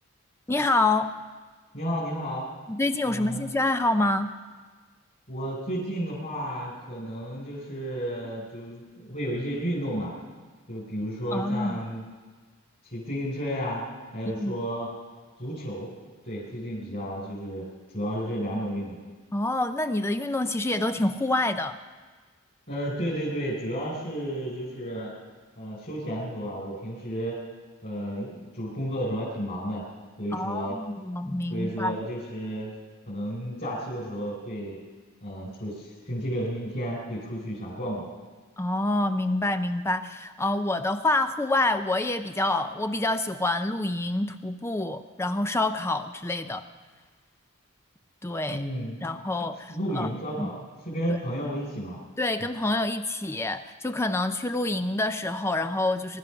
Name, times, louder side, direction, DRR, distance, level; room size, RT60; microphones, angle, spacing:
voice 1, 0.5-1.1 2.7-4.3 11.3-11.8 14.3-14.6 19.3-21.8 30.3-31.9 38.6-46.6 48.2-48.6 49.0-50.1 50.4-50.5 51.1-51.2 52.2-56.2, left 2 dB, 10° left, 9 dB, 0.4 m, -27 dB
voice 2, 1.7-2.5 3.1-3.5 5.3-10.1 10.7-12.1 12.8-13.8 14.1-14.9 15.4-15.9 16.2-17.6 17.9-19.0 22.7-25.1 25.6-27.4 27.8-29.8 30.2-30.8 31.5-32.7 33.1-34.8 35.2-38.1 48.5-48.9 49.7-52.0, equal, 40° left, -5 dB, 3.6 m, -32 dB
20.5 x 12.0 x 5.8 m, 1.4 s
head